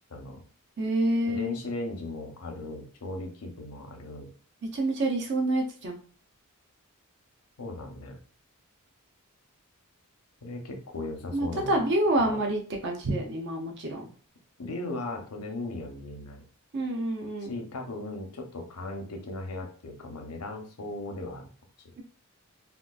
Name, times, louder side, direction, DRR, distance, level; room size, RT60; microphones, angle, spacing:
voice 1, 0.1-0.4 1.3-4.3 7.6-8.2 10.4-11.9 12.2-12.4 14.6-16.4 17.4-21.4, left 2 dB, 85° left, 4 dB, 0.7 m, -37 dB
voice 2, 0.8-1.6 4.7-6.0 11.3-14.0 16.7-17.5, right 1 dB, 55° right, 2 dB, 0.6 m, -27 dB
3.6 x 2.3 x 2.3 m, 0.42 s
head